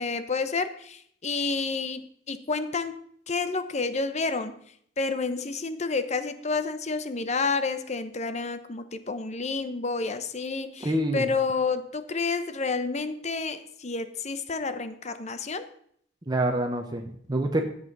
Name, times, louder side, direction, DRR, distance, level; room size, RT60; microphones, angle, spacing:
voice 1, 0.0-4.5 5.0-15.6, left 4 dB, 40° left, 11 dB, 0.9 m, -30 dB
voice 2, 10.8-11.3 16.3-17.6, right 1 dB, 20° right, 3 dB, 1.0 m, -26 dB
13.0 x 8.3 x 5.4 m, 0.64 s
head